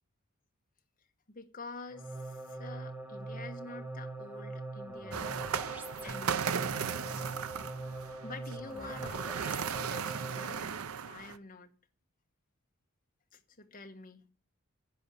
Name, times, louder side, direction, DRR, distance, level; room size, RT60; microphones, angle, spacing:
voice 1, 1.3-5.3 6.0-6.7 7.1-7.2 8.2-10.8 11.0-11.7 13.3-14.3, left 3 dB, 40° left, 1.4 m, -48 dB
sound 1, 1.9-10.7, right 2 dB, 10° right, 0.9 m, -42 dB
sound 2, 5.1-11.4, right 7 dB, 75° right, 0.6 m, -36 dB
10.5 x 6.3 x 6.9 m
head